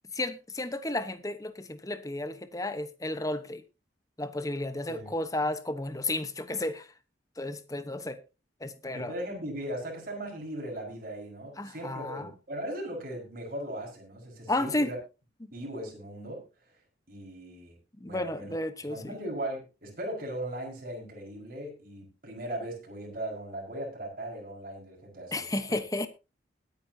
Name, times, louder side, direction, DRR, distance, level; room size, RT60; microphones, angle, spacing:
voice 1, 0.1-3.6 4.2-6.9 7.4-8.2 8.6-9.1 11.6-12.3 14.5-14.9 15.4-15.5 18.0-19.1 25.3-26.1, left 2 dB, 20° left, 1.0 m, -32 dB
voice 2, 8.9-15.0 15.5-16.4 17.1-17.8 18.0-18.6 18.9-25.5, right 1 dB, 50° right, 5.1 m, -38 dB
21.0 x 9.2 x 2.8 m
head